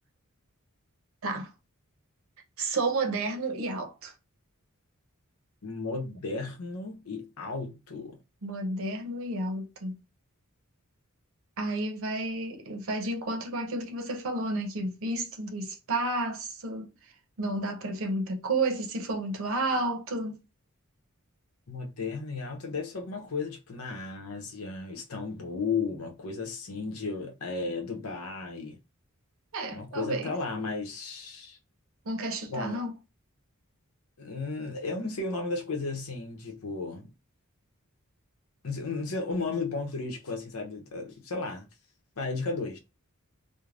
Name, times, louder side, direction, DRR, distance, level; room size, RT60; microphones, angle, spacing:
voice 1, 2.6-4.1 8.4-10.0 11.6-16.9 17.4-20.4 29.5-30.3 32.1-32.9, right 2 dB, 65° right, 0.6 m, -31 dB
voice 2, 5.6-8.2 21.7-28.8 29.7-31.6 32.5-32.8 34.2-37.1 38.6-41.7 42.2-42.8, left 3 dB, 90° left, 0.7 m, -34 dB
3.2 x 2.1 x 2.4 m
head